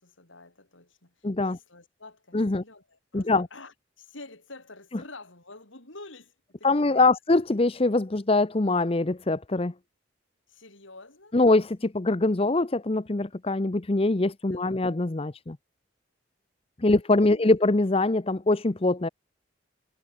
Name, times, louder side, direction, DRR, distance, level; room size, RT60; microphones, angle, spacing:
voice 1, 0.0-7.2 10.5-11.4 14.5-14.8 16.9-17.0 17.3-17.6, left 2 dB, 85° left, 6.6 m, -48 dB
voice 2, 1.2-1.6 2.3-2.6 3.1-3.5 6.6-9.7 11.3-15.6 16.8-19.1, left 2 dB, 30° left, 0.7 m, -23 dB
head